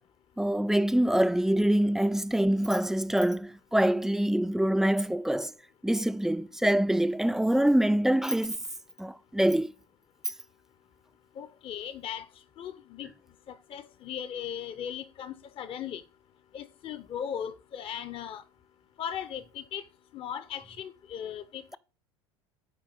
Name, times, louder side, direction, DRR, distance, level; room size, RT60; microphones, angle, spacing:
voice 1, 0.4-5.5 5.8-8.6 9.0-9.7, right 1 dB, 5° right, 0.3 m, -25 dB
voice 2, 11.4-12.3 12.6-13.1 13.5-16.0 16.5-18.4 19.0-19.8 20.1-21.8, left 9 dB, 40° left, 0.6 m, -38 dB
7.3 x 4.6 x 5.2 m
hypercardioid pair, 85°, 15 cm